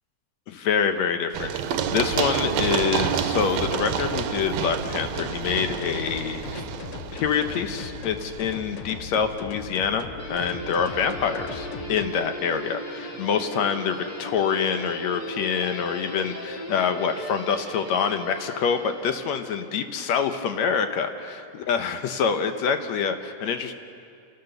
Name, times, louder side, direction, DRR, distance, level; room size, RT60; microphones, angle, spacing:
voice 1, 0.5-6.6 7.1-23.7, left 6 dB, 70° left, 7 dB, 2.1 m, -26 dB
Run, 1.3-9.0, right 8 dB, 70° right, 1.9 m, -29 dB
sound 1, 3.9-12.1, left 7 dB, 85° left, 2.4 m, -39 dB
Guitar, 10.2-19.5, equal, 35° left, 2.8 m, -37 dB
28.0 x 18.0 x 6.7 m, 2.4 s
omnidirectional pair, 3.4 m